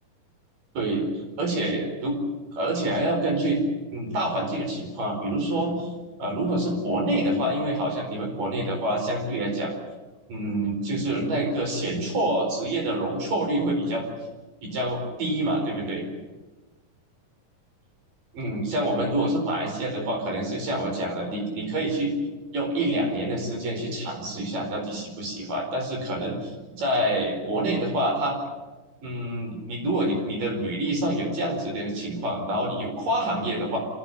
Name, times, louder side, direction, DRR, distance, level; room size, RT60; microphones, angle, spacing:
voice 1, 1.4-2.2 2.5-3.6 3.9-5.9 6.2-9.7 10.3-14.0 14.6-16.1 18.3-22.1 22.5-28.4 29.0-33.8, right 1 dB, 80° right, 2 dB, 6.3 m, -27 dB
26.0 x 17.0 x 9.3 m, 1.2 s
omnidirectional pair, 3.9 m